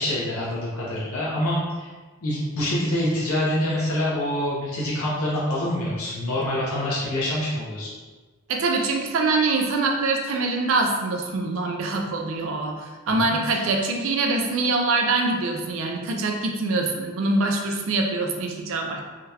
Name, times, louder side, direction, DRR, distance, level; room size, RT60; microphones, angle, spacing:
voice 1, 0.0-1.9 2.2-7.9 13.1-13.4, left 1 dB, 80° left, -7 dB, 0.7 m, -26 dB
voice 2, 8.5-19.0, right 3 dB, 65° right, 1 dB, 0.4 m, -24 dB
3.6 x 2.3 x 2.8 m, 1.3 s
head